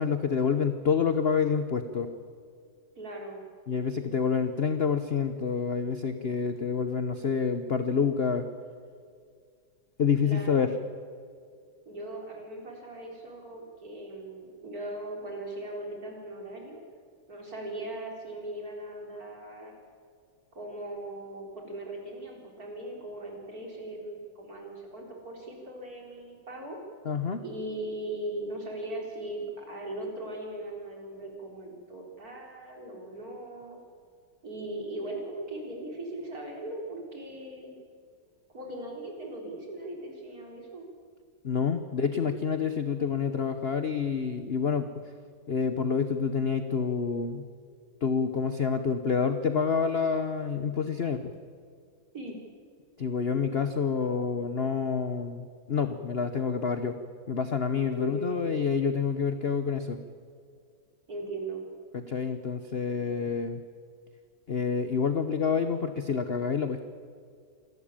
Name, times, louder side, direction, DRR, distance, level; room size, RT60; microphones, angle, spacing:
voice 1, 0.0-2.1 3.7-8.5 10.0-10.7 27.0-27.4 41.4-44.9 45.5-47.5 48.0-51.3 53.0-57.0 57.3-60.0 61.9-63.6 64.5-66.8, left 6 dB, 45° left, 9 dB, 0.8 m, -28 dB
voice 2, 3.0-3.4 10.2-10.7 11.9-16.8 17.3-19.8 20.5-26.8 27.4-33.8 34.4-37.8 38.5-40.9 52.1-52.4 57.8-58.6 61.1-61.6, right 1 dB, 45° right, 0 dB, 4.4 m, -39 dB
27.5 x 12.5 x 8.9 m, 2.2 s
omnidirectional pair, 2.1 m